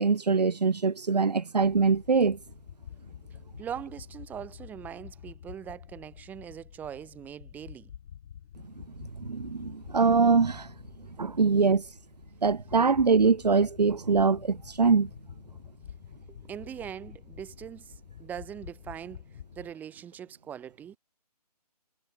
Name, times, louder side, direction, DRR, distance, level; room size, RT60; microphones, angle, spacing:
voice 1, 0.0-2.4 9.2-10.7 11.2-11.8 12.4-15.1, right 4 dB, 85° right, 1.0 m, -23 dB
sound 1, 1.6-19.7, left 9 dB, 45° left, 7.4 m, -48 dB
voice 2, 3.6-7.9 12.7-12.9 16.3-17.9 18.2-19.3 19.6-21.0, right 9 dB, 10° right, 0.8 m, -41 dB
figure-of-eight pair, 145°, 20 cm